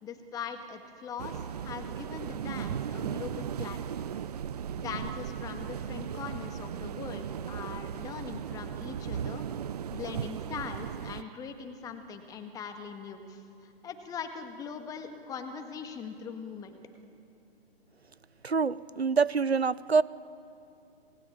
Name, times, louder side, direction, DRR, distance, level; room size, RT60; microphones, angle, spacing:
voice 1, 0.0-4.1 4.8-9.5 9.9-16.8, left 6 dB, 10° left, 6 dB, 1.8 m, -41 dB
sound 1, 1.2-11.2, right 8 dB, 40° right, 0.7 m, -37 dB
voice 2, 18.4-20.0, right 5 dB, 90° right, 18 dB, 1.0 m, -25 dB
27.0 x 20.5 x 8.8 m, 2.6 s
figure-of-eight pair, 140°, 31 cm